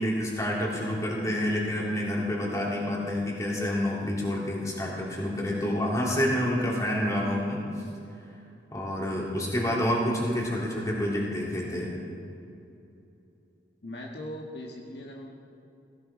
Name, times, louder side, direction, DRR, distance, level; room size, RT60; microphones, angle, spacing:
voice 1, 0.0-7.7 8.7-11.9, left 1 dB, 20° left, -4 dB, 3.3 m, -28 dB
voice 2, 13.8-15.3, left 1 dB, 65° left, -1 dB, 1.6 m, -39 dB
17.5 x 16.5 x 4.3 m, 2.7 s
head